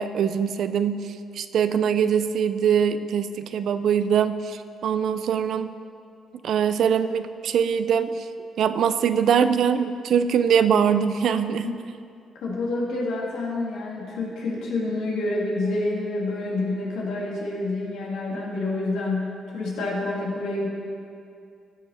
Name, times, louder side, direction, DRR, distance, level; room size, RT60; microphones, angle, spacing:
voice 1, 0.0-5.7 6.4-8.3 8.6-11.7, right 7 dB, 70° right, 11 dB, 0.5 m, -22 dB
voice 2, 12.4-20.7, left 2 dB, 90° left, -4 dB, 2.6 m, -28 dB
16.0 x 7.0 x 4.3 m, 2.4 s
cardioid pair, 90°, 0 cm